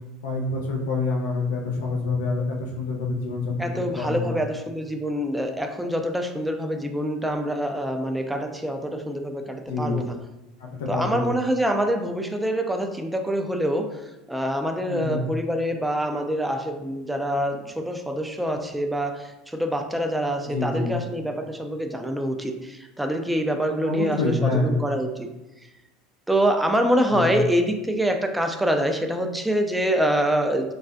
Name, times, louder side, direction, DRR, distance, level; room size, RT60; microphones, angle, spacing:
voice 1, 0.2-3.7 3.9-4.4 9.7-10.0 10.6-11.3 14.9-15.3 20.4-21.0 23.8-24.8 27.1-27.3, left 3 dB, 75° left, 1 dB, 0.6 m, -27 dB
voice 2, 3.6-10.2 10.9-14.0 14.3-25.3 26.3-30.7, equal, 5° right, 4 dB, 0.3 m, -25 dB
3.3 x 2.3 x 2.5 m, 0.99 s
hypercardioid pair, 85°, 0 cm